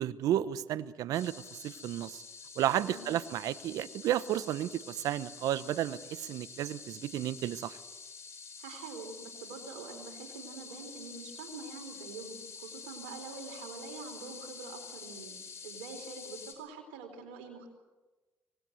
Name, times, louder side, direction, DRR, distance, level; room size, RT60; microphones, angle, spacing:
voice 1, 0.0-2.2 2.6-7.8, right 12 dB, 70° right, 16 dB, 1.0 m, -32 dB
sound 1, 1.1-16.5, left 5 dB, 45° left, 5.6 m, -48 dB
voice 2, 2.7-3.1 8.6-15.4 15.6-17.7, right 4 dB, 90° right, 5 dB, 4.0 m, -45 dB
25.0 x 19.5 x 7.9 m, 1.2 s
hypercardioid pair, 60°, 6 cm